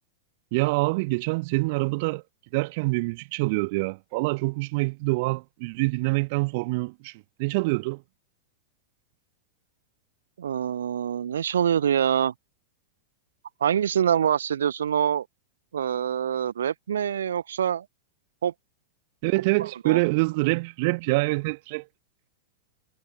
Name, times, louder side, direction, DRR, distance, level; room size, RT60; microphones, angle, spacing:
voice 1, 0.5-2.2 2.5-8.0 19.2-21.8, right 26 dB, 50° right, 1.8 m, -25 dB
voice 2, 10.4-12.3 13.6-15.2 15.7-17.8 18.4-18.5 19.8-20.0, right 9 dB, 65° right, 1.4 m, -25 dB
figure-of-eight pair, 90°, 0 cm